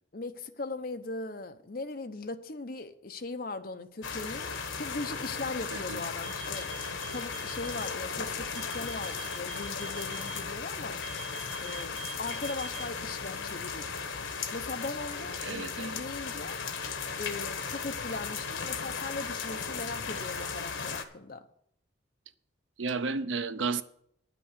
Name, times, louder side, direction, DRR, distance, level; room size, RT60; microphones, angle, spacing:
voice 1, 0.1-4.5 4.8-6.7 7.1-11.0 11.6-14.0 14.5-16.6 17.2-21.5, left 3 dB, 50° left, 0.8 m, -39 dB
sound 1, 4.0-21.0, left 5 dB, 85° left, 1.1 m, -36 dB
sound 2, 6.2-7.9 8.5-10.3 11.0-12.8, right 4 dB, 70° left, 2.1 m, -44 dB
voice 2, 15.4-16.0 22.8-23.8, right 4 dB, 75° right, 0.6 m, -32 dB
10.5 x 6.1 x 8.0 m
head